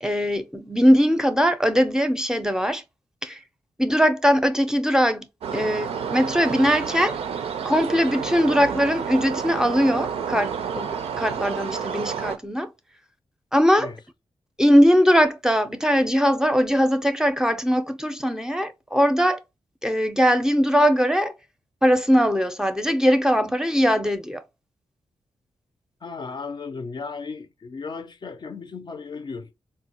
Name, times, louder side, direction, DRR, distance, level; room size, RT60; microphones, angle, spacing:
voice 1, 0.0-2.8 3.2-3.4 3.8-7.2 7.6-12.7 13.5-13.9 14.6-19.4 19.8-21.3 21.8-24.4, equal, 5° right, 0.5 m, -20 dB
sound 1, 5.4-12.4, right 7 dB, 85° right, 0.4 m, -30 dB
voice 2, 26.0-29.5, left 4 dB, 50° left, 0.4 m, -35 dB
3.8 x 2.0 x 2.8 m
cardioid pair, 60°, 10 cm